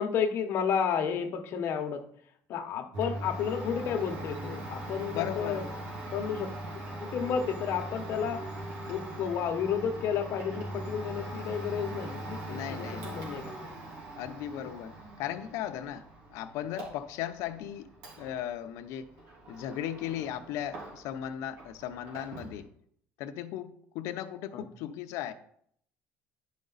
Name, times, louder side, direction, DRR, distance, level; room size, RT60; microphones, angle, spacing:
voice 1, 0.0-2.0 2.5-5.7 6.1-6.5 7.0-8.5 8.9-13.7 14.6-14.7 24.5-24.6, left 7 dB, 50° left, 5 dB, 1.0 m, -32 dB
Domestic sounds home sounds, 2.9-21.3 21.5-22.6, right 1 dB, 80° right, 3.3 m, -41 dB
voice 2, 5.1-5.7 12.5-13.2 14.1-17.9 18.2-19.1 19.5-22.7 23.2-25.3, left 11 dB, 70° left, 9 dB, 0.6 m, -37 dB
11.0 x 5.2 x 4.0 m, 0.66 s
cardioid pair, 155°, 5 cm